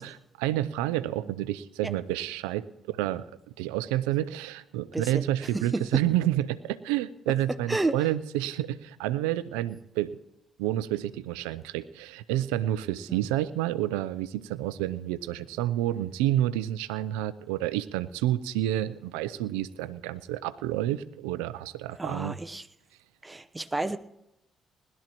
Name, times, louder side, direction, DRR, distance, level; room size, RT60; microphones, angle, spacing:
voice 1, 0.0-3.2 3.6-10.2 10.6-22.4, right 13 dB, 85° right, 15 dB, 0.5 m, -29 dB
voice 2, 4.9-5.2 5.5-6.0 7.7-8.0 13.1-13.2 22.0-22.7 23.2-24.0, right 2 dB, 20° right, 10 dB, 0.8 m, -30 dB
20.5 x 12.0 x 3.0 m, 0.83 s
hypercardioid pair, 50°, 0 cm